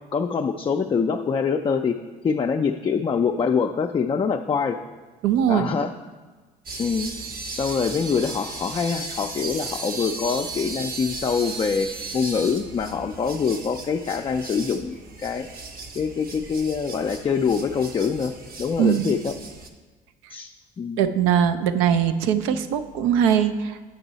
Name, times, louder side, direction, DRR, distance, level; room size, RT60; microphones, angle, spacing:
voice 1, 0.1-2.0 2.2-4.8 5.5-5.9 6.8-7.1 7.5-15.5 16.0-18.3 18.6-19.3 20.3-20.5 20.8-21.0, left 6 dB, 25° left, 4 dB, 0.4 m, -24 dB
voice 2, 5.2-5.7 18.8-19.1 21.0-23.8, right 9 dB, 80° right, 10 dB, 0.5 m, -21 dB
sound 1, 6.7-19.7, right 3 dB, 45° right, 0.9 m, -36 dB
8.0 x 5.3 x 4.0 m, 1.3 s
supercardioid pair, 70°, 21 cm